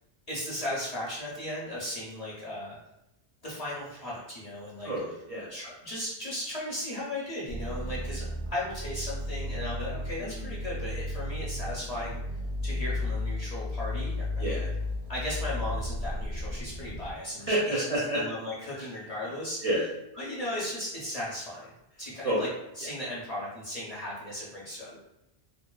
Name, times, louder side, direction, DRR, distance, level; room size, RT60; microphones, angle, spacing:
voice 1, 0.3-2.8 3.4-4.9 5.5-12.2 12.6-14.6 15.1-19.6 20.1-21.7 22.0-22.5 22.8-25.0, left 1 dB, 45° left, -7 dB, 0.6 m, -36 dB
voice 2, 4.8-5.5 10.2-10.5 14.4-14.7 17.5-18.2 18.7-18.9 19.6-19.8 22.2-22.4, right 1 dB, 45° right, -7 dB, 0.5 m, -29 dB
sound 1, 7.5-17.1, left 1 dB, 85° right, 1.0 m, -34 dB
2.6 x 2.2 x 2.2 m, 0.90 s
omnidirectional pair, 1.1 m